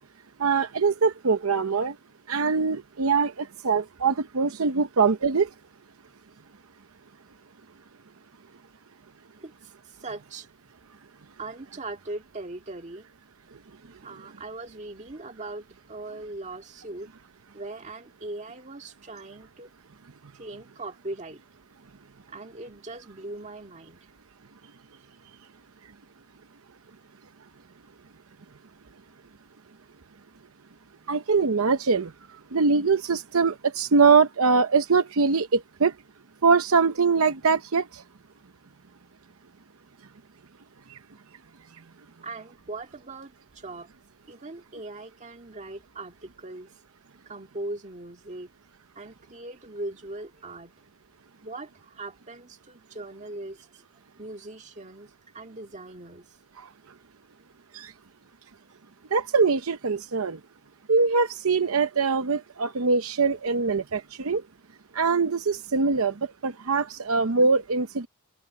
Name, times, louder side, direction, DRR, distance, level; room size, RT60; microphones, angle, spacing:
voice 1, 0.4-1.9 2.3-5.5 31.1-32.1 32.5-35.9 36.4-38.0 57.7-57.9 59.1-60.4 60.9-64.4 64.9-66.1 66.4-68.1, right 4 dB, 75° right, 0.8 m, -23 dB
voice 2, 9.4-10.5 11.4-13.1 14.0-17.1 17.5-19.7 20.3-21.4 22.3-24.1 42.2-43.9 44.3-46.7 47.3-48.5 49.0-50.7 51.4-53.8 54.2-56.4, right 2 dB, 35° right, 1.9 m, -40 dB
open air
head